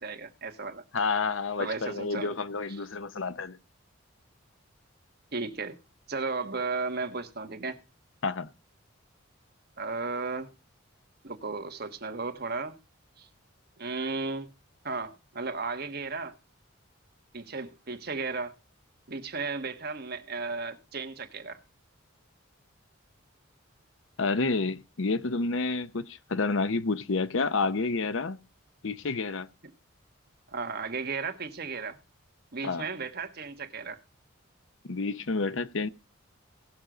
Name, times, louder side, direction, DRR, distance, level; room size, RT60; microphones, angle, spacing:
voice 1, 0.0-0.8 1.6-2.3 5.3-5.8 6.1-7.8 9.8-10.5 11.2-12.8 13.2-13.3 13.8-14.5 14.8-16.4 17.3-18.5 19.1-21.6 30.5-32.0 32.5-34.0, right 4 dB, 50° right, 1.4 m, -34 dB
voice 2, 0.9-3.6 8.2-8.5 24.2-28.4 28.8-29.5 32.6-32.9 34.8-35.9, left 3 dB, 70° left, 0.8 m, -29 dB
17.5 x 6.4 x 5.0 m
head